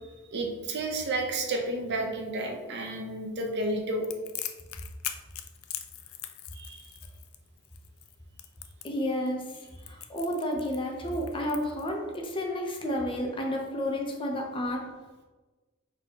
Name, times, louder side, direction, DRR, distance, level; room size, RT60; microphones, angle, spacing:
voice 1, 0.3-4.1 6.5-6.9, right 2 dB, 55° right, 2 dB, 0.7 m, -31 dB
Crackle, 4.0-12.3, left 12 dB, 80° left, 0.4 m, -41 dB
voice 2, 8.8-9.5 9.9-14.9, equal, 25° left, 1 dB, 0.6 m, -31 dB
4.5 x 4.1 x 2.9 m, 1.3 s
head